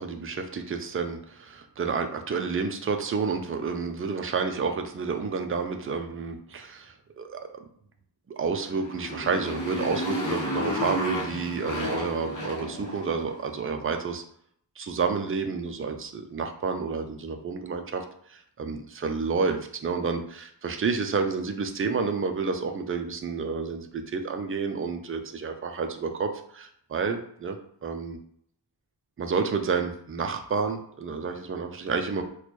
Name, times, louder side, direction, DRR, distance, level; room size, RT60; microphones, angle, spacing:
voice 1, 0.0-7.4 8.3-14.2 14.8-18.0 18.3-28.2 29.2-32.2, right 5 dB, 30° right, 5 dB, 0.4 m, -30 dB
Motorcycle, 8.7-13.3, equal, 45° left, 0.9 m, -32 dB
4.2 x 2.2 x 3.0 m, 0.66 s
wide cardioid pair, 170°, 43 cm